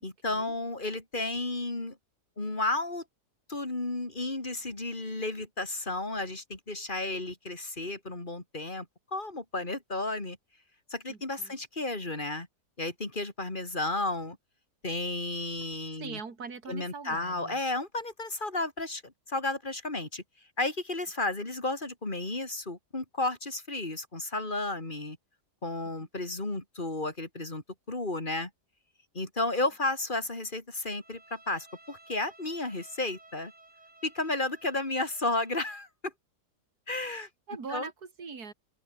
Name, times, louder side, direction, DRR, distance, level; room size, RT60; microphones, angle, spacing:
voice 1, 0.0-2.0 2.4-3.0 3.5-8.9 9.1-10.4 10.9-12.5 12.8-14.4 14.8-16.2 16.7-20.2 20.6-25.2 25.6-28.5 29.1-33.5 34.0-36.1 36.9-37.3 37.7-37.9, left 2 dB, 30° left, 3.8 m, -33 dB
voice 2, 11.1-11.6 16.0-17.6 37.5-38.5, right 5 dB, 65° right, 3.3 m, -42 dB
Bowed string instrument, 30.9-35.9, right 2 dB, 45° right, 4.7 m, -56 dB
open air
omnidirectional pair, 1.8 m